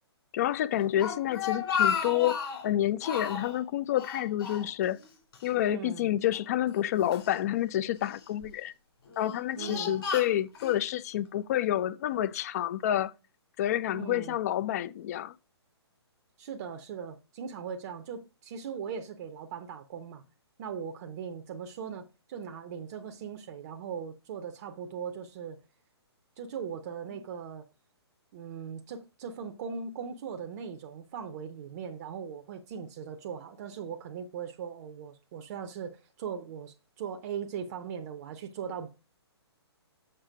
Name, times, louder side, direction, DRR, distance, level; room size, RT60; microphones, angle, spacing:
voice 1, 0.3-2.4 2.6-5.0 5.4-8.7 9.2-13.1 13.6-15.3, left 12 dB, 35° left, 0.4 m, -29 dB
Speech, 0.8-2.7 3.0-3.6 4.0-5.1 5.3-5.5 6.3-7.3 8.0-8.5 9.1-10.8, left 6 dB, 60° left, 3.6 m, -33 dB
voice 2, 5.7-6.1 9.6-10.0 13.9-14.4 16.4-20.2 20.6-25.6 26.4-27.7 28.3-38.9, right 7 dB, 35° right, 0.7 m, -39 dB
6.7 x 5.6 x 4.8 m
figure-of-eight pair, 130°, 14 cm